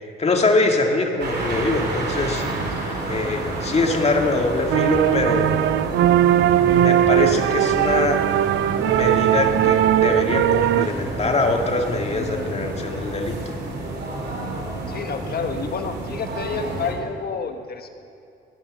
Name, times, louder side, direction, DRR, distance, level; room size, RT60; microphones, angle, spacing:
voice 1, 0.2-2.5 3.0-5.7 6.3-6.4 6.6-8.2 8.9-13.6, left 2 dB, 30° left, 2 dB, 2.1 m, -23 dB
sound 1, 1.2-16.9, right 2 dB, 60° right, 3.7 m, -30 dB
sound 2, 4.7-10.9, right 12 dB, 75° right, 0.5 m, -19 dB
voice 2, 14.9-17.9, left 5 dB, 50° left, 7 dB, 1.3 m, -29 dB
19.5 x 10.5 x 6.5 m, 2.6 s
cardioid pair, 90°, 20 cm